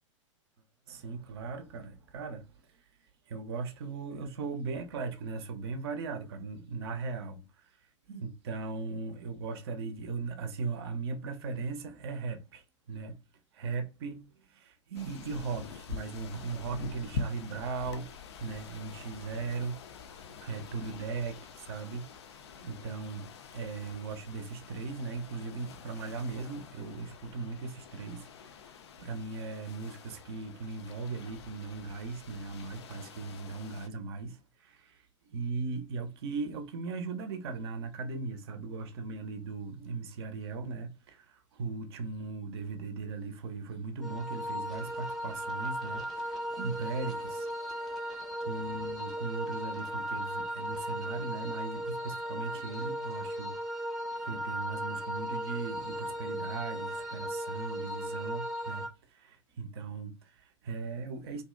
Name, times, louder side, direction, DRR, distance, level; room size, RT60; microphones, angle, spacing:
voice 1, 0.9-2.5 3.3-7.4 8.1-13.2 13.5-18.1 18.4-19.8 20.1-22.1 22.6-28.3 29.0-47.5 47.8-47.9 48.4-53.8 54.1-61.4, right 4 dB, 50° right, 0.5 m, -38 dB
sound 1, 14.9-33.9, left 5 dB, 55° left, 0.4 m, -46 dB
sound 2, 44.0-58.9, equal, ahead, 0.6 m, -36 dB
2.6 x 2.1 x 2.3 m
figure-of-eight pair, 100°, 17 cm